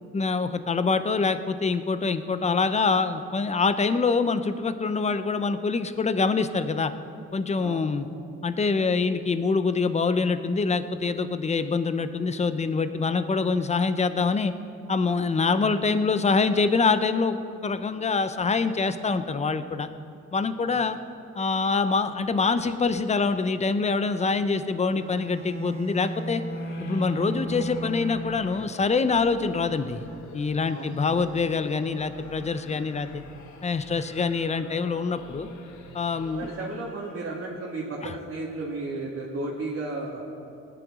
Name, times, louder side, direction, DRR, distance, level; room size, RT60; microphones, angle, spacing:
voice 1, 0.1-6.9 7.3-8.1 8.4-14.5 14.9-17.4 17.6-19.9 20.3-21.0 21.3-26.4 26.8-30.1 30.3-33.2 33.6-35.5 35.9-36.5, left 4 dB, 20° left, 11 dB, 0.6 m, -25 dB
voice 2, 20.6-21.0 30.7-31.0 36.3-40.2, right 2 dB, 45° right, -5 dB, 1.8 m, -34 dB
Bowed string instrument, 24.9-28.7, right 1 dB, 20° right, 1.5 m, -34 dB
sound 1, 26.5-37.1, left 3 dB, 75° left, 1.3 m, -47 dB
18.5 x 10.0 x 3.7 m, 2.6 s
cardioid pair, 90°, 30 cm